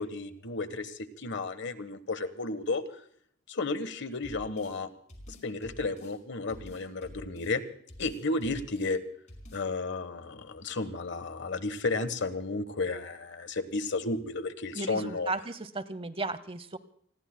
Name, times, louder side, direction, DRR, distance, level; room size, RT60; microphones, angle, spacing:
voice 1, 0.0-2.8 3.5-4.9 5.3-7.6 8.0-9.0 9.5-15.3, left 3 dB, 65° left, 12 dB, 1.2 m, -33 dB
sound 1, 4.2-4.8 5.1-6.2 6.5-7.6 7.9-8.9 9.3-9.7, equal, 40° left, 5.0 m, -49 dB
voice 2, 14.7-16.8, right 3 dB, 30° right, 14 dB, 0.8 m, -35 dB
30.0 x 20.5 x 2.2 m, 0.63 s
head